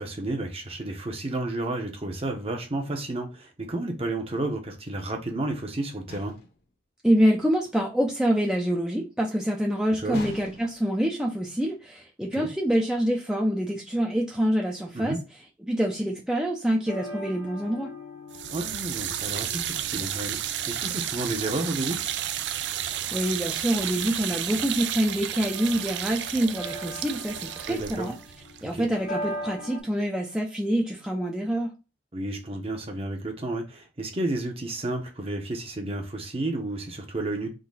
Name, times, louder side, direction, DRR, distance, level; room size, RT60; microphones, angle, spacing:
voice 1, 0.0-6.3 10.0-10.2 12.3-12.5 14.9-15.2 18.5-22.0 27.7-28.1 28.7-28.9 32.1-37.5, right 2 dB, 35° right, 0.9 m, -31 dB
sound 1, 6.1-6.6 10.1-10.9, left 3 dB, 60° left, 1.1 m, -42 dB
voice 2, 7.0-15.2 15.6-17.9 23.1-28.2 28.6-31.7, equal, 5° right, 0.5 m, -26 dB
sound 2, 16.9-29.8, equal, 80° left, 1.0 m, -42 dB
sound 3, 18.3-29.4, right 11 dB, 75° right, 0.4 m, -32 dB
3.8 x 2.8 x 4.0 m
head